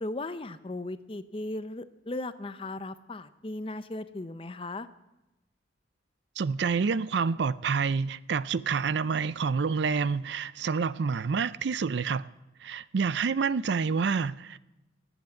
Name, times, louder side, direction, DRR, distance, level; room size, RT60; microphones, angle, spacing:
voice 1, 0.0-4.9, left 2 dB, 30° left, 0.6 m, -37 dB
voice 2, 6.4-12.3 12.6-14.6, right 5 dB, 65° right, 0.4 m, -28 dB
19.0 x 8.1 x 7.7 m
head